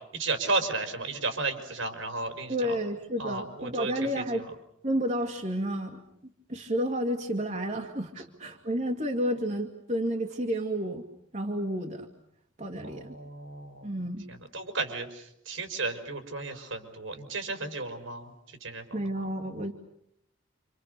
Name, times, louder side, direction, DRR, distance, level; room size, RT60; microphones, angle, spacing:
voice 1, 0.1-2.8 3.2-3.9 12.8-13.9 14.5-18.3 18.6-19.0, right 3 dB, 80° right, 6 dB, 5.3 m, -33 dB
voice 2, 2.5-4.5 4.8-6.0 6.5-11.0 11.3-12.1 12.6-13.1 13.8-14.3 18.9-19.7, equal, 40° right, 2 dB, 2.2 m, -31 dB
28.5 x 27.0 x 6.8 m, 0.74 s
head